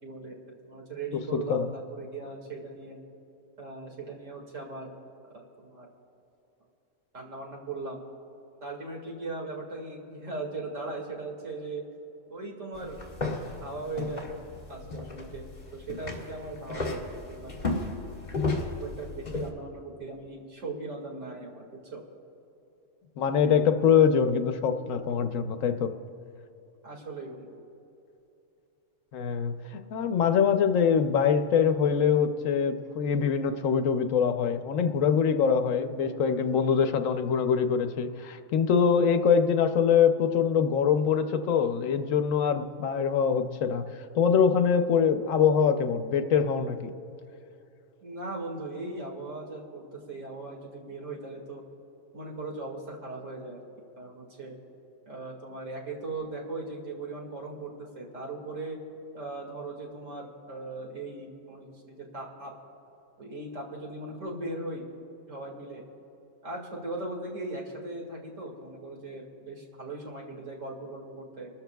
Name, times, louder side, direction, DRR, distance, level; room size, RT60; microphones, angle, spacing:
voice 1, 0.0-3.0 3.6-4.9 5.3-5.9 7.1-8.0 8.6-11.8 12.3-13.0 13.6-14.3 14.7-15.5 15.7-17.7 18.5-22.0 26.8-27.6 48.0-51.6 52.1-53.6 54.0-54.6 55.1-58.8 59.1-62.5 63.2-64.9 65.3-65.8 66.4-71.5, right 2 dB, 75° right, -1 dB, 2.4 m, -39 dB
voice 2, 1.3-1.7 23.2-25.9 29.1-43.8 44.1-46.9, left 7 dB, 90° left, 8 dB, 1.1 m, -24 dB
sound 1, 12.7-19.5, left 3 dB, 35° left, 2.0 m, -34 dB
29.5 x 13.5 x 2.3 m, 2.9 s
omnidirectional pair, 1.3 m